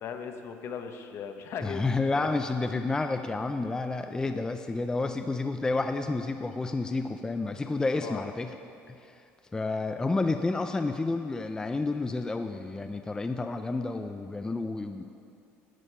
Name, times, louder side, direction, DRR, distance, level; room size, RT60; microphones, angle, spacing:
voice 1, 0.0-2.3 8.0-8.2, left 7 dB, 55° left, 6 dB, 0.8 m, -38 dB
voice 2, 1.6-8.5 8.9-9.2 9.5-15.1, left 3 dB, 15° left, 7 dB, 0.4 m, -30 dB
11.0 x 6.5 x 5.5 m, 2.5 s
supercardioid pair, 105°, 5 cm